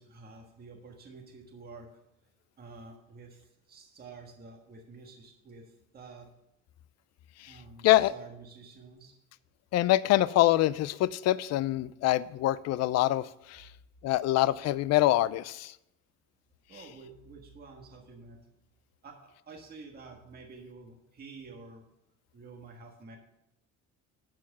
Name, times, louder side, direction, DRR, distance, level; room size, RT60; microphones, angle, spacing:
voice 1, 0.0-1.9 2.6-6.3 7.5-9.1 16.7-18.4 19.0-21.8 22.3-23.2, right 4 dB, 30° right, 1 dB, 1.5 m, -49 dB
voice 2, 9.7-13.7 14.0-15.7, left 15 dB, 60° left, 18 dB, 0.4 m, -25 dB
12.0 x 4.7 x 6.1 m, 0.83 s
cardioid pair, 160°, 30 cm